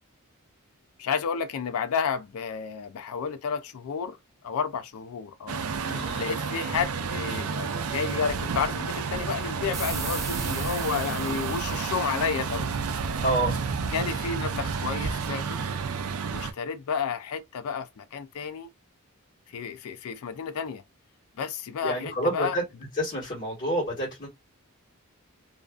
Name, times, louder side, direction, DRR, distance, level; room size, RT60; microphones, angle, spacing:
voice 1, 1.0-4.2 4.4-5.6 6.2-12.7 13.9-15.6 16.3-18.7 19.5-20.8 21.4-22.6, left 6 dB, 75° left, 0.4 m, -31 dB
Truck, 5.5-16.5, right 5 dB, 75° right, 0.4 m, -30 dB
voice 2, 5.8-6.3 13.2-13.5 21.8-22.6 22.9-24.3, right 1 dB, 40° left, 1.3 m, -28 dB
sound 1, 9.7-13.0, right 4 dB, 15° right, 0.4 m, -39 dB
2.5 x 2.4 x 2.3 m
head